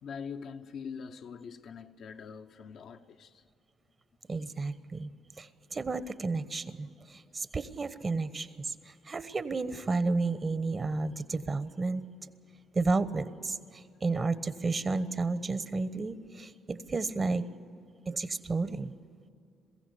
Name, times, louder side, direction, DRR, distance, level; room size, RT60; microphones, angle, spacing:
voice 1, 0.0-3.5, left 6 dB, 65° left, 0.9 m, -43 dB
voice 2, 4.3-5.1 5.4-12.0 12.7-17.4 18.1-18.9, right 3 dB, 35° right, 1.2 m, -32 dB
22.0 x 16.0 x 8.3 m
hypercardioid pair, 55°, 0 cm